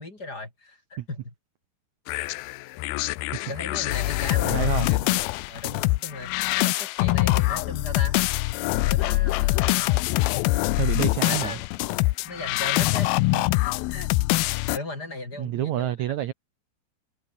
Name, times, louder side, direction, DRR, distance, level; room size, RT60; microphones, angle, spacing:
voice 1, 0.0-1.3 3.5-5.2 5.5-6.3 6.6-8.2 8.8-10.1 11.2-11.7 12.2-14.1 14.5-15.9, left 2 dB, 25° left, 5.0 m, -37 dB
sound 1, 2.1-14.8, left 20 dB, 80° left, 2.4 m, -24 dB
voice 2, 4.4-4.9 10.8-11.6 15.4-16.3, right 13 dB, 85° right, 1.6 m, -28 dB
omnidirectional pair, 4.7 m